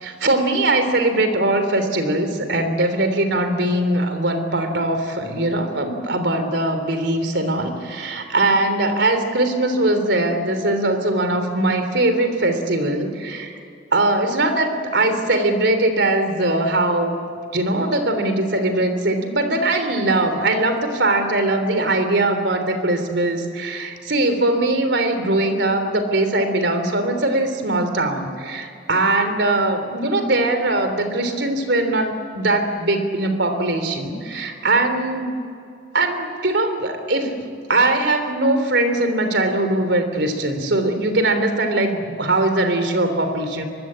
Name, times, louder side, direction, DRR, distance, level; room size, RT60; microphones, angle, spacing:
voice 1, 0.0-13.6 13.9-17.2 17.5-35.3 35.9-43.6, right 2 dB, 70° right, 8 dB, 3.3 m, -21 dB
24.5 x 22.0 x 9.9 m, 2.4 s
head